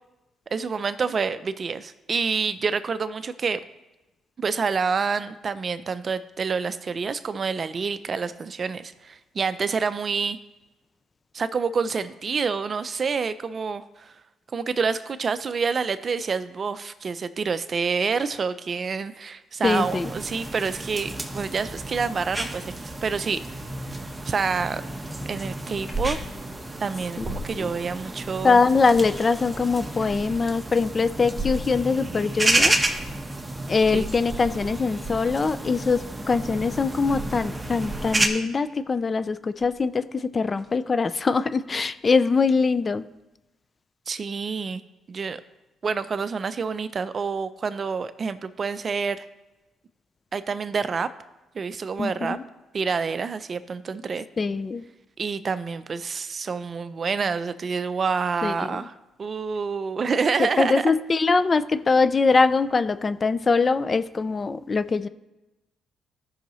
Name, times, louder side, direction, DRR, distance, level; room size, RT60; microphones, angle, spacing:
voice 1, 0.5-3.6 4.4-10.4 11.3-14.1 14.5-23.4 24.2-24.8 25.3-26.2 26.8-28.6 33.9-34.1 44.1-44.8 45.1-45.4 45.8-49.2 50.3-51.1 51.5-52.4 52.7-54.2 55.2-58.9 59.2-61.0, right 5 dB, 40° right, 13 dB, 0.5 m, -27 dB
voice 2, 19.6-20.1 27.2-27.7 28.4-32.8 33.7-43.1 52.0-52.4 54.4-54.8 58.4-58.9 60.4-65.1, left 4 dB, 35° left, 14 dB, 0.4 m, -23 dB
sound 1, 19.6-38.3, right 2 dB, 15° right, 1.0 m, -31 dB
sound 2, 25.6-26.2 26.6-26.7 27.0-27.5 28.7-29.3 29.8-30.5 31.2-31.7 32.5-33.2 33.5-38.3 39.6-39.9 40.6-40.7, right 1 dB, 10° left, 1.8 m, -37 dB
14.0 x 5.6 x 3.1 m, 1.0 s
cardioid pair, 90°, 0 cm